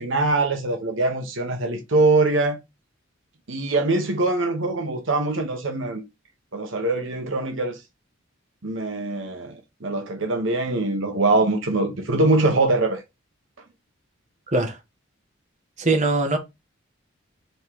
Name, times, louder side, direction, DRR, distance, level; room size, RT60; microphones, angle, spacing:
voice 1, 0.0-2.6 3.5-6.0 6.5-7.8 8.6-13.0, right 2 dB, 65° right, 1.1 m, -23 dB
voice 2, 14.5-14.8 15.8-16.4, right 2 dB, 35° right, 1.4 m, -21 dB
5.2 x 3.7 x 4.8 m
head